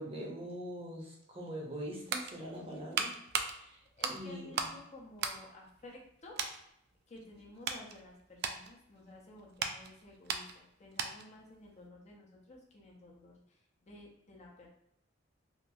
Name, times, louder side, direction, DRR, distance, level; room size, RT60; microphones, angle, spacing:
voice 1, 0.0-3.1 3.5-3.8 4.1-4.6, equal, 30° right, -2 dB, 0.7 m, -43 dB
sound 1, 1.7-4.8 5.1-6.1 6.4-6.6 7.2-11.4 11.7-11.9, right 6 dB, 60° right, 0.3 m, -38 dB
voice 2, 4.0-6.4 7.1-14.7, left 2 dB, 40° left, -2 dB, 0.5 m, -53 dB
2.8 x 2.5 x 2.3 m, 0.77 s
head